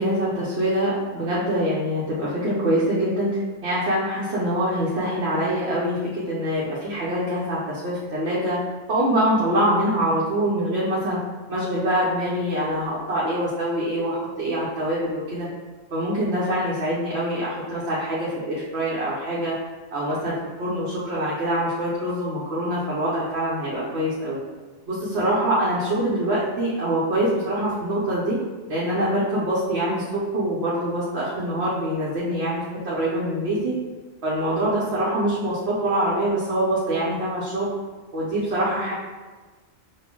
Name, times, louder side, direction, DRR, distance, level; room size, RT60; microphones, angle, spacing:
voice 1, 0.0-8.6 8.9-11.2 11.5-15.5 15.9-19.6 19.9-24.4 24.9-28.4 28.7-33.7 34.2-37.7 38.1-38.9, right 1 dB, 85° right, -8 dB, 1.1 m, -24 dB
6.1 x 2.6 x 2.9 m, 1.3 s
omnidirectional pair, 1.1 m